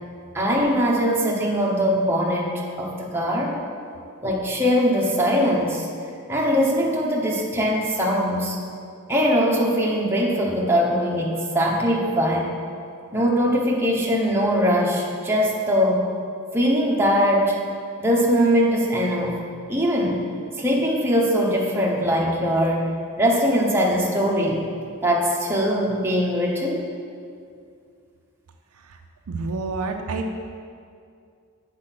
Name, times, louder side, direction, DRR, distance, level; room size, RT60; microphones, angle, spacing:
voice 1, 0.3-3.6 4.2-5.9 6.3-8.6 9.1-12.5 13.1-16.1 16.5-17.6 18.0-19.4 19.7-20.2 20.6-22.9 23.2-24.6 25.0-26.8, equal, 10° right, -3 dB, 0.9 m, -21 dB
voice 2, 29.3-30.4, right 3 dB, 70° right, 4 dB, 0.5 m, -29 dB
7.6 x 4.4 x 5.8 m, 2.3 s
head